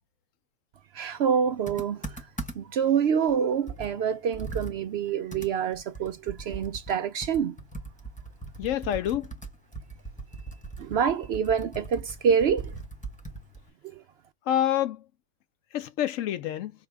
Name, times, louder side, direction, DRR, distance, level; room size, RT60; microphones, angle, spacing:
voice 1, 0.9-2.3 2.5-7.6 10.8-12.7 13.9-14.0, right 7 dB, 70° right, 0.6 m, -26 dB
Computer keyboard, 1.7-2.8 3.3-3.4 3.7-7.0 7.2-13.7, right 3 dB, 5° left, 0.7 m, -40 dB
voice 2, 8.6-9.3 14.5-15.0 15.7-16.7, left 11 dB, 65° left, 0.9 m, -27 dB
5.4 x 2.1 x 3.4 m
omnidirectional pair, 1.6 m